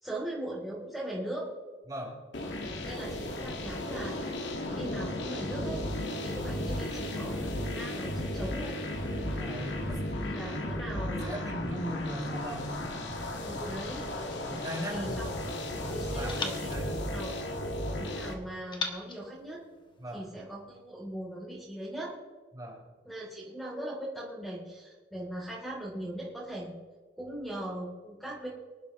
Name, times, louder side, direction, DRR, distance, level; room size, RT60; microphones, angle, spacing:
voice 1, 0.0-1.5 2.5-4.2 4.7-5.8 6.2-8.8 10.2-11.5 13.4-14.0 14.9-15.3 15.8-17.3 18.0-19.6 20.1-22.1 23.0-26.7 27.2-28.5, right 1 dB, ahead, -6 dB, 3.4 m, -40 dB
sound 1, 2.3-18.3, left 1 dB, 90° left, 2.0 m, -35 dB
voice 2, 9.2-10.5 11.1-13.6 14.4-15.1 15.4-17.1 20.0-20.3 22.5-22.8, equal, 20° right, -3 dB, 4.4 m, -39 dB
sound 2, 16.3-17.9 18.7-20.3, left 4 dB, 25° left, 1.4 m, -42 dB
25.0 x 11.5 x 3.2 m, 1.4 s
head